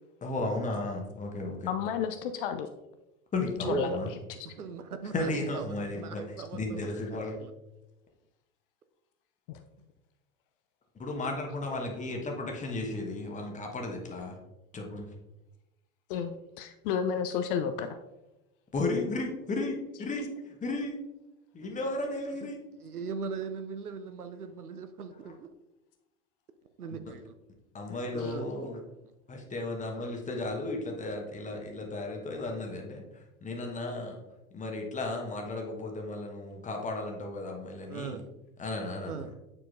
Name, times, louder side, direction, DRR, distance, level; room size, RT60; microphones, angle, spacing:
voice 1, 0.2-1.7 3.3-4.1 5.0-7.4 11.0-14.4 14.7-15.1 18.7-21.0 21.5-22.6 25.2-25.3 27.7-28.8 29.3-33.0 33.4-34.2 34.5-38.2 38.6-39.3, left 2 dB, 15° left, 1 dB, 1.2 m, -34 dB
voice 2, 1.7-2.7 3.7-4.0 9.5-9.6 16.1-18.0 28.2-28.3, left 7 dB, 40° left, 8 dB, 0.4 m, -32 dB
voice 3, 4.4-5.6 5.9-7.0 7.4-7.5 22.4-22.5 22.8-25.5 26.8-27.2 28.1-28.5 37.9-38.3 39.0-39.4, right 5 dB, 85° right, 9 dB, 0.6 m, -39 dB
8.6 x 4.5 x 2.5 m, 0.97 s
figure-of-eight pair, 80°, 44 cm